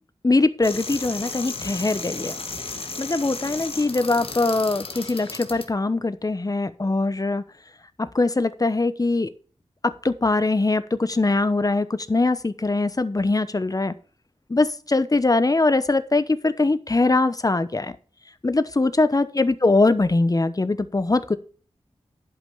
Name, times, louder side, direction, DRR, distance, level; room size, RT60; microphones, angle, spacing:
voice 1, 0.2-2.3 3.0-7.4 8.0-9.3 9.8-13.9 14.5-17.9 18.4-21.4, left 3 dB, 35° left, 13 dB, 1.0 m, -22 dB
sound 1, 0.6-5.7, left 3 dB, 55° left, 1.8 m, -34 dB
11.0 x 5.4 x 6.2 m, 0.41 s
cardioid pair, 45°, 11 cm